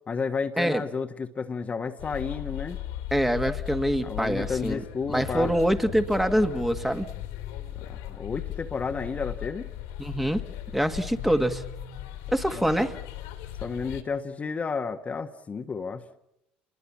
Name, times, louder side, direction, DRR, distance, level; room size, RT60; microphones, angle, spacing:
voice 1, 0.1-2.8 4.0-5.5 7.9-9.7 12.5-12.7 13.6-16.0, left 5 dB, 30° left, 6 dB, 1.4 m, -31 dB
sound 1, 2.0-14.0, left 12 dB, 80° left, 2.8 m, -37 dB
voice 2, 3.1-7.1 10.0-10.4 10.7-11.6 12.3-13.0, equal, 5° right, 7 dB, 1.8 m, -25 dB
29.0 x 21.5 x 7.3 m, 0.83 s
hypercardioid pair, 70°, 4 cm